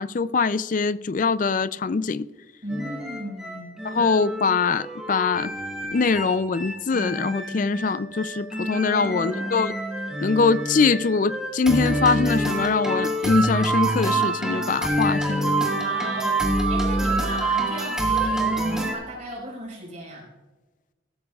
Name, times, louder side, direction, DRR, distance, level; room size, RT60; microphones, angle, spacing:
voice 1, 0.0-2.3 3.9-5.5 5.9-9.7 10.2-15.5, left 4 dB, 40° left, 0.4 m, -23 dB
voice 2, 2.6-4.0 8.9-9.6 15.7-16.4 16.7-20.3, right 1 dB, 40° right, 4.7 m, -36 dB
sound 1, 2.7-18.9, right 1 dB, 5° right, 1.8 m, -26 dB
16.5 x 13.5 x 2.4 m
head